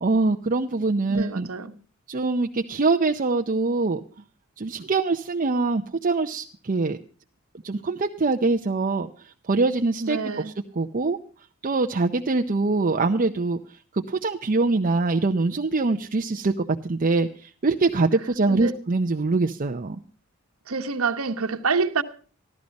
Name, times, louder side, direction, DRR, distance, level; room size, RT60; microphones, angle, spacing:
voice 1, 0.0-1.5 2.1-4.0 4.6-7.0 7.6-9.1 9.5-10.2 10.4-11.2 11.6-13.6 13.9-16.5 16.8-20.0, right 3 dB, 40° right, 0.6 m, -23 dB
voice 2, 1.1-1.8 10.0-10.5 18.5-18.7 20.7-22.0, right 4 dB, 90° right, 1.1 m, -27 dB
14.5 x 13.0 x 5.2 m
head